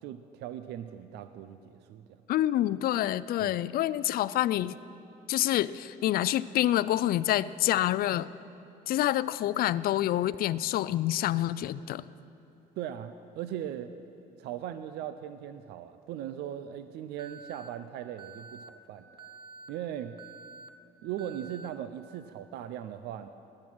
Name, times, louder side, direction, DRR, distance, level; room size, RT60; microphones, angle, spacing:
voice 1, 0.0-2.2 3.4-3.6 12.8-13.9 14.4-19.1 19.7-20.2 21.0-23.3, right 10 dB, 80° right, 11 dB, 0.5 m, -39 dB
voice 2, 2.3-4.8 5.3-8.3 8.9-12.0, left 13 dB, 60° left, 17 dB, 0.4 m, -27 dB
Alarm, 17.2-17.7 18.2-18.7 19.2-19.7 20.2-20.7 21.2-21.7, right 4 dB, 30° right, 1.0 m, -48 dB
19.5 x 8.7 x 6.2 m, 2.8 s
cardioid pair, 110°, 17 cm